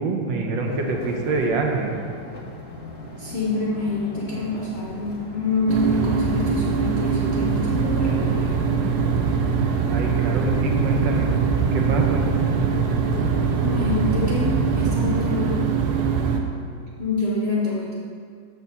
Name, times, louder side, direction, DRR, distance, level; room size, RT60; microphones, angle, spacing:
voice 1, 0.0-2.0 9.9-11.3 11.7-12.2, right 3 dB, 85° right, 2 dB, 1.5 m, -25 dB
sound 1, 0.6-13.9, equal, 20° left, 0.6 m, -37 dB
voice 2, 3.2-8.5 13.6-15.7 17.0-17.9, left 2 dB, 65° left, -3 dB, 0.6 m, -26 dB
sound 2, 5.7-16.4, right 5 dB, 70° right, 1.1 m, -22 dB
6.9 x 6.5 x 4.1 m, 2.3 s
omnidirectional pair, 2.0 m